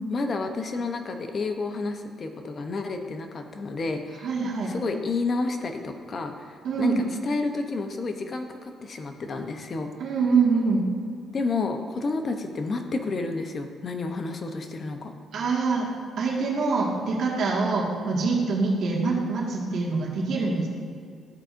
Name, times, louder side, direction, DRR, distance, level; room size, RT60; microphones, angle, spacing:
voice 1, 0.1-4.3 4.7-6.9 7.2-9.9 11.3-15.1, left 3 dB, 45° left, 5 dB, 0.7 m, -30 dB
voice 2, 4.2-4.7 6.6-7.0 10.0-10.8 15.3-15.9 16.2-20.7, right 4 dB, 70° right, -3 dB, 1.8 m, -24 dB
13.0 x 4.9 x 2.6 m, 2.2 s
cardioid pair, 90°, 0 cm